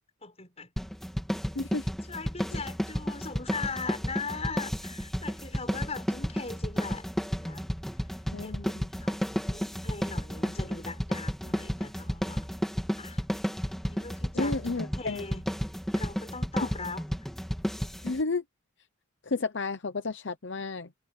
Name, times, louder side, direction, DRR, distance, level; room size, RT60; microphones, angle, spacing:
voice 1, 0.2-0.7 2.1-7.7 8.4-8.7 9.0-12.5 13.0-13.2 13.9-15.4 15.9-17.0, left 4 dB, 30° left, 6.9 m, -39 dB
sound 1, 0.8-18.2, equal, ahead, 2.7 m, -32 dB
voice 2, 1.5-1.9 2.5-2.6 8.3-8.9 14.3-15.2 18.0-18.4 19.2-20.9, left 3 dB, 60° left, 0.8 m, -32 dB
head